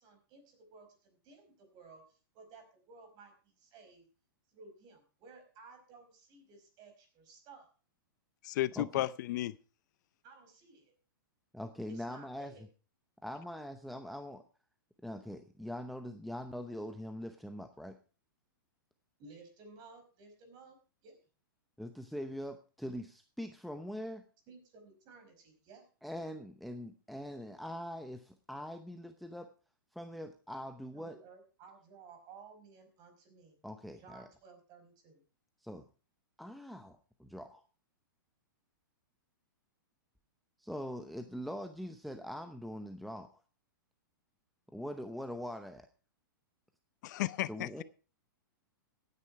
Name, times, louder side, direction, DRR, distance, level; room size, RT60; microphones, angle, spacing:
voice 1, 0.0-4.0 4.5-7.7 10.2-10.9 11.9-12.6 19.2-20.8 21.0-21.2 24.5-25.8 31.0-33.6 34.0-35.2, right 4 dB, 35° right, 5.0 m, -56 dB
voice 2, 8.4-9.6 47.0-47.8, left 15 dB, 55° left, 0.5 m, -34 dB
voice 3, 11.5-12.5 13.2-14.4 15.0-18.0 21.8-24.2 26.0-29.5 29.9-31.2 33.6-34.3 35.6-35.9 36.4-37.6 40.6-43.3 44.7-45.9 47.5-47.8, equal, ahead, 0.8 m, -42 dB
15.5 x 9.8 x 4.7 m
hypercardioid pair, 130°, 11 cm